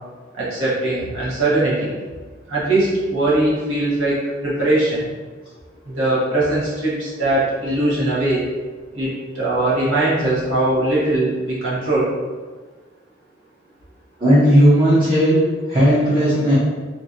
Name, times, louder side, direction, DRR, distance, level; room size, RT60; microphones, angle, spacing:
voice 1, 0.3-1.9 2.5-5.1 5.8-8.4 8.9-12.1, right 2 dB, 85° right, -8 dB, 1.1 m, -20 dB
voice 2, 14.2-15.4 15.7-16.6, equal, 25° right, -11 dB, 0.6 m, -14 dB
2.9 x 2.5 x 2.4 m, 1.4 s
head